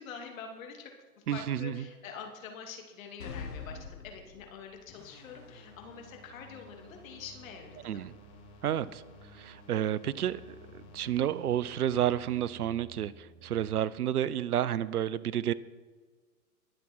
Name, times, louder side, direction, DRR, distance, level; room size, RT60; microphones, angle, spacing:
voice 1, 0.0-8.1, left 6 dB, 60° left, 3 dB, 3.0 m, -46 dB
voice 2, 1.3-1.7 7.8-8.1 8.6-9.0 9.4-10.4 10.9-13.1 13.4-15.5, right 11 dB, 75° right, 19 dB, 0.7 m, -30 dB
sound 1, 3.2-4.9, left 5 dB, 90° left, 1.4 m, -43 dB
sound 2, 4.9-12.6, left 2 dB, 40° left, 3.0 m, -55 dB
sound 3, 4.9-13.7, right 3 dB, 10° left, 5.2 m, -57 dB
22.0 x 7.5 x 4.8 m, 1.4 s
hypercardioid pair, 115°, 45 cm